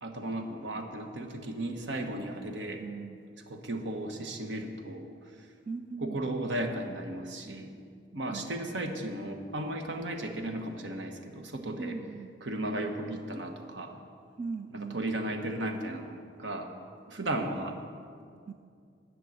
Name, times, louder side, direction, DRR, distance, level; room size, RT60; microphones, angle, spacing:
voice 1, 0.0-2.8 3.5-5.5 6.0-12.0 12.4-14.0 14.7-16.7 17.1-17.8, right 1 dB, 70° right, 5 dB, 1.1 m, -35 dB
voice 2, 2.8-3.3 5.7-6.3 8.3-8.7 11.8-12.3 14.4-15.0 18.5-18.6, right 4 dB, 35° right, 7 dB, 0.3 m, -39 dB
11.5 x 6.2 x 9.1 m, 2.3 s
head